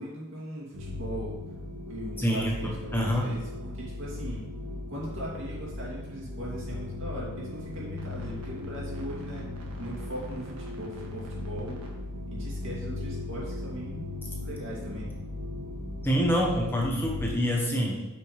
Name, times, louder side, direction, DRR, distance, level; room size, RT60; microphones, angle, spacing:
voice 1, 0.0-1.4 1.8-4.4 4.9-9.5 9.8-11.8 12.3-14.1 14.4-15.1, right 1 dB, 60° right, -5 dB, 2.5 m, -39 dB
sound 1, 0.7-17.3, left 2 dB, 85° right, 1.6 m, -37 dB
voice 2, 2.2-3.3 16.0-18.1, equal, 10° left, -1 dB, 0.8 m, -26 dB
8.7 x 5.6 x 3.3 m, 1.1 s
head